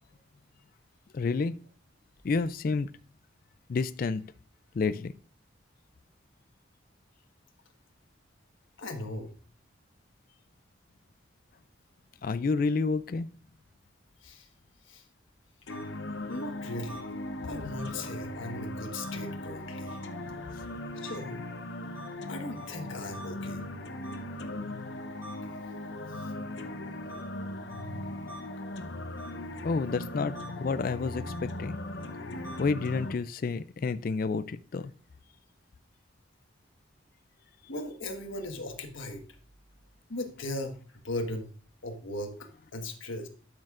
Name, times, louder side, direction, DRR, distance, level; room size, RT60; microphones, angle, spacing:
voice 1, 1.1-1.5 2.2-2.9 3.7-4.2 4.7-5.1 12.2-13.3 29.6-30.3 30.6-31.8 32.6-34.9, left 4 dB, 45° left, 15 dB, 0.3 m, -29 dB
voice 2, 8.8-9.3 14.2-14.5 14.9-15.0 16.3-17.0 17.4-20.0 21.0-21.4 22.3-23.6 37.7-39.2 40.1-40.8 41.0-41.5 41.8-43.3, left 1 dB, 80° left, 4 dB, 1.4 m, -38 dB
sound 1, 15.7-33.1, left 1 dB, 65° left, 0.8 m, -38 dB
sound 2, 15.7-15.8 16.3-16.4 16.9-17.0 17.8-17.9 19.0-19.1 19.9-20.0 20.6-20.7 21.0-21.2 21.9-22.1 22.5-22.7 23.1-23.3 24.0-24.2 25.2-25.3 26.1-26.2 27.1-27.2 27.7-27.8 28.3-28.4 29.2-29.3 30.3-30.5 31.3-31.4 32.0-32.1 32.4-32.6, right 1 dB, 15° right, 3.4 m, -46 dB
12.0 x 6.4 x 2.5 m, 0.42 s
head